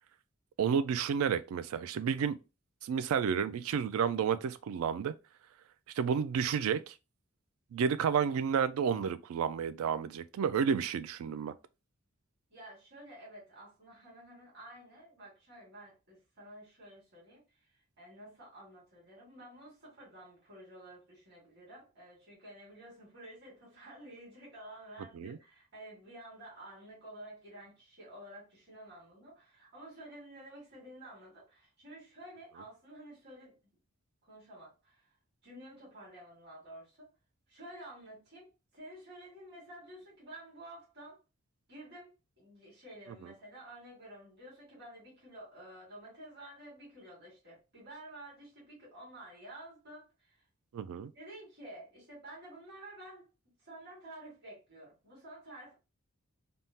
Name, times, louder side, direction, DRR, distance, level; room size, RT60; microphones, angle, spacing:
voice 1, 0.6-2.4 2.8-5.1 6.0-6.9 7.7-11.5 25.1-25.4 43.2-43.3 50.7-51.1, right 7 dB, 75° right, 0.3 m, -31 dB
voice 2, 12.5-17.4 18.0-33.5 34.2-35.1 35.4-37.1 37.5-41.2 41.7-50.4 51.1-53.3 53.6-55.7, right 1 dB, 50° right, 1.7 m, -51 dB
3.5 x 2.0 x 2.7 m
head